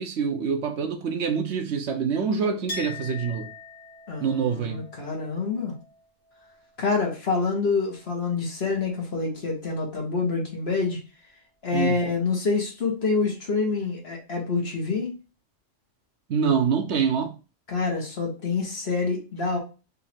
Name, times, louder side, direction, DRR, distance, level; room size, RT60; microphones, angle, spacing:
voice 1, 0.0-3.5 4.2-4.8 11.7-12.0 16.3-17.3, right 6 dB, 65° right, 0.9 m, -25 dB
Chink clink, 2.7-8.2 8.5-9.4, left 3 dB, 30° left, 1.7 m, -43 dB
voice 2, 4.1-5.7 6.8-11.0 11.6-15.1 17.7-19.6, left 4 dB, 55° left, 1.6 m, -27 dB
4.2 x 2.8 x 4.3 m
omnidirectional pair, 1.3 m